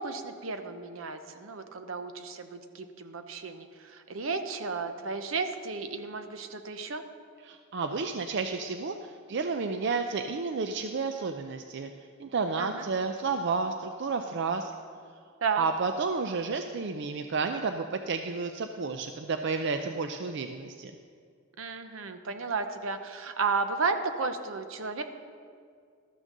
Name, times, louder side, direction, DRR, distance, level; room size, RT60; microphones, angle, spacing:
voice 1, 0.0-7.0 12.6-12.8 15.4-15.6 21.6-25.0, right 4 dB, 80° right, 8 dB, 0.8 m, -33 dB
voice 2, 7.5-11.9 12.2-14.7 15.6-20.9, right 4 dB, 60° right, 6 dB, 0.5 m, -31 dB
13.0 x 6.3 x 6.6 m, 2.2 s
head